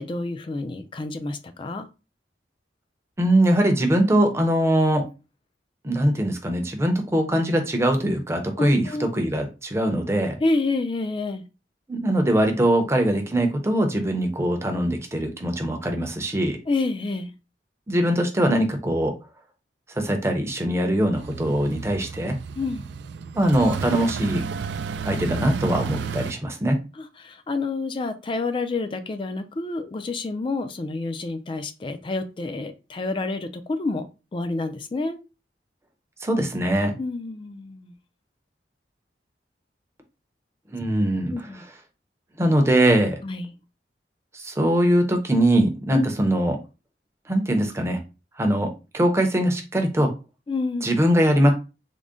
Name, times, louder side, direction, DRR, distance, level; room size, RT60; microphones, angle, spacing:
voice 1, 0.0-1.9 8.6-9.1 10.4-11.4 16.7-17.3 22.6-22.8 27.0-34.1 34.3-35.2 37.0-37.9 41.3-41.6 43.2-43.5 45.9-46.1 50.5-50.9, left 3 dB, 30° left, 0.3 m, -28 dB
voice 2, 3.2-5.0 5.8-10.4 11.9-16.6 17.9-19.1 20.0-22.4 23.3-24.4 25.0-26.8 36.2-36.9 40.7-41.3 42.4-43.2 44.3-46.6 47.3-48.0 48.4-50.1 50.8-51.5, right 1 dB, 15° right, 0.6 m, -22 dB
sound 1, 21.2-26.3, right 6 dB, 80° right, 0.3 m, -32 dB
3.7 x 2.1 x 3.6 m
head